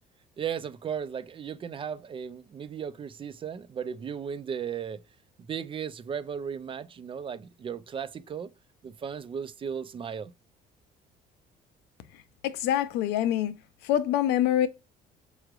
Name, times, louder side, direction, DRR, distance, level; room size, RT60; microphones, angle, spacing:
voice 1, 0.4-5.0 5.5-8.5 8.8-10.3, right 7 dB, 30° right, 0.4 m, -36 dB
voice 2, 12.4-13.5 13.8-14.7, left 11 dB, 90° left, 0.5 m, -25 dB
4.7 x 3.1 x 2.4 m
cardioid pair, 110°, 17 cm